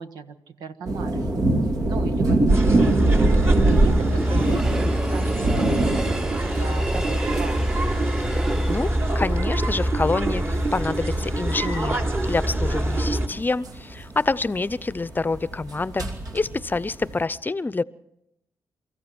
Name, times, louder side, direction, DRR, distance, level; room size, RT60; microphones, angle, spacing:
voice 1, 0.0-1.4 1.8-7.6, right 5 dB, 85° right, 10 dB, 1.4 m, -37 dB
sound 1, 0.8-17.2, right 2 dB, 65° right, 2.8 m, -24 dB
Train, 2.1-11.1 11.5-11.6, right 1 dB, 10° right, 0.9 m, -34 dB
sound 2, 2.5-13.3, right 1 dB, 35° right, 3.6 m, -24 dB
voice 2, 8.3-17.8, left 3 dB, 30° left, 18 dB, 0.7 m, -27 dB
29.0 x 14.5 x 6.2 m, 0.84 s
supercardioid pair, 60°, 7 cm